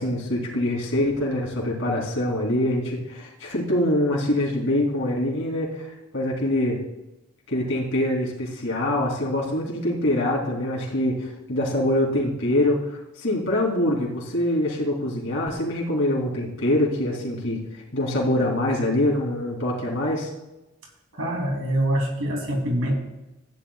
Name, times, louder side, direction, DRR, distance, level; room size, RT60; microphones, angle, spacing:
voice 1, 0.0-6.8 7.5-20.3, left 1 dB, 60° left, -3 dB, 3.0 m, -24 dB
voice 2, 21.1-22.9, right 1 dB, 75° right, 0 dB, 3.0 m, -24 dB
15.0 x 10.0 x 2.4 m, 0.98 s
head